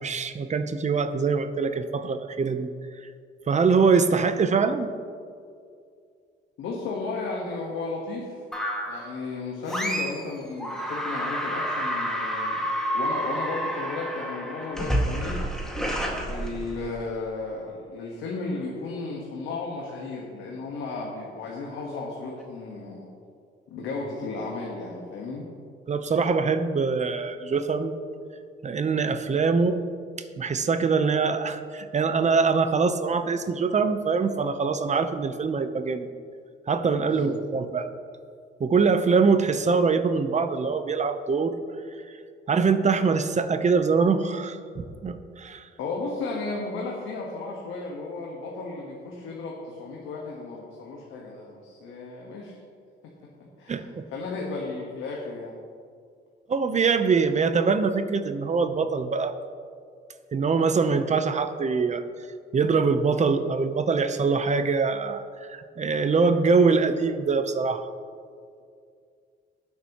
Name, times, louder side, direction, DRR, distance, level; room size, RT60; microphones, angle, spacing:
voice 1, 0.0-2.7 3.5-4.9 25.9-28.0 28.6-29.8 30.4-36.1 36.7-37.9 38.6-41.6 42.5-45.7 53.7-54.0 56.5-59.3 60.3-62.0 62.5-67.9, right 5 dB, 35° right, 10 dB, 0.8 m, -23 dB
voice 2, 6.6-8.4 8.9-12.7 12.9-15.5 16.3-23.1 23.7-25.5 37.0-37.3 45.8-52.6 53.6-55.6, left 3 dB, 85° left, -2 dB, 1.4 m, -34 dB
sound 1, 8.5-9.1 9.7-10.3 10.6-17.0, equal, 5° left, 1.9 m, -29 dB
18.0 x 7.2 x 3.0 m, 2.2 s
cardioid pair, 90°, 20 cm